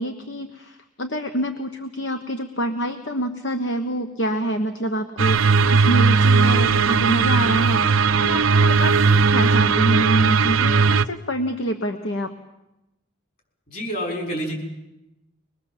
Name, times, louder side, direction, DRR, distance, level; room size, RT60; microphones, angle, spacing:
voice 1, 0.0-7.9 8.2-12.3, right 1 dB, 60° left, 6 dB, 1.3 m, -26 dB
sound 1, 5.2-11.0, right 4 dB, 85° right, 0.8 m, -17 dB
voice 2, 13.7-14.5, equal, 45° left, 2 dB, 6.4 m, -28 dB
23.5 x 22.0 x 7.6 m, 0.93 s
head